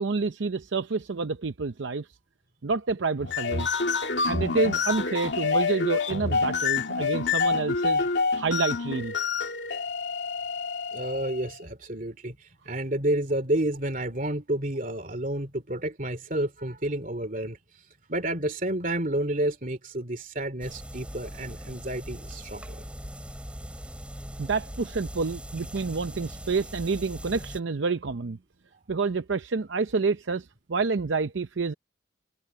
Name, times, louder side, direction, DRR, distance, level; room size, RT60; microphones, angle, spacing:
voice 1, 0.0-2.1 2.6-3.7 4.2-9.1 24.4-28.4 28.9-31.7, right 4 dB, 75° right, 0.7 m, -28 dB
sound 1, 3.2-11.5, left 4 dB, 70° left, 2.3 m, -27 dB
voice 2, 10.9-12.4 12.6-17.6 18.1-22.8, right 1 dB, 45° right, 3.1 m, -30 dB
sound 2, 20.6-27.6, equal, 5° right, 6.1 m, -40 dB
head